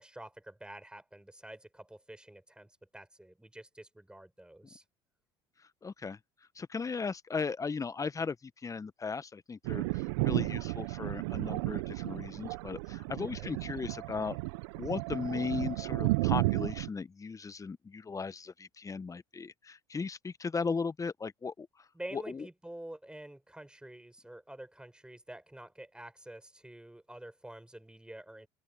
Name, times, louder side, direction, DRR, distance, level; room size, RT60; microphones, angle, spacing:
voice 1, 0.0-4.8 13.2-13.5 21.9-28.5, right 1 dB, 5° right, 6.9 m, -48 dB
voice 2, 5.8-6.2 6.5-14.4 14.8-22.5, left 5 dB, 25° left, 1.4 m, -37 dB
Thunder, 9.6-16.9, right 23 dB, 75° right, 1.1 m, -33 dB
hypercardioid pair, 70°, 14 cm